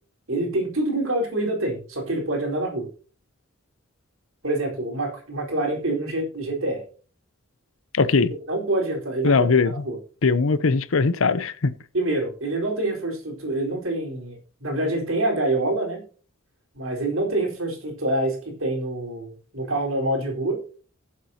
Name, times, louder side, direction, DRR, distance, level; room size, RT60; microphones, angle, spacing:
voice 1, 0.3-2.9 4.4-6.8 8.5-9.5 9.8-10.0 11.9-16.0 16.7-20.6, right 2 dB, 75° right, 4.2 m, -26 dB
voice 2, 7.9-8.3 9.2-9.7 10.2-11.7, left 4 dB, 70° left, 0.7 m, -20 dB
19.5 x 7.4 x 2.8 m
head